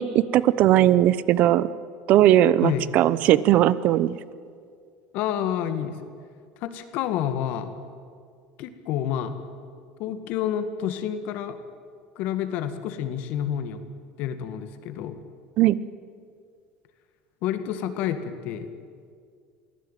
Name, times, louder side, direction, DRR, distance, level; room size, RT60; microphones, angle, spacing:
voice 1, 0.0-1.7 2.1-4.2 15.6-15.8, right 13 dB, 55° right, 18 dB, 0.8 m, -19 dB
voice 2, 5.1-6.0 6.6-7.7 8.6-9.3 10.0-11.6 12.2-13.8 14.2-15.2 17.4-18.7, left 10 dB, 65° left, 9 dB, 1.9 m, -29 dB
23.0 x 15.5 x 9.2 m, 2.1 s
supercardioid pair, 110°, 3 cm